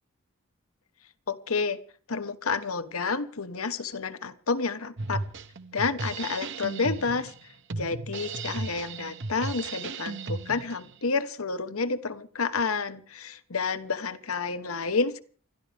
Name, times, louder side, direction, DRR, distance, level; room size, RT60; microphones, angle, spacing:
voice 1, 1.3-1.8 2.1-5.2 5.7-7.3 7.7-15.2, left 4 dB, 85° left, 11 dB, 1.2 m, -30 dB
Drum kit, 5.0-10.9, right 3 dB, 60° right, 1.1 m, -35 dB
29.0 x 12.5 x 3.5 m, 0.42 s
head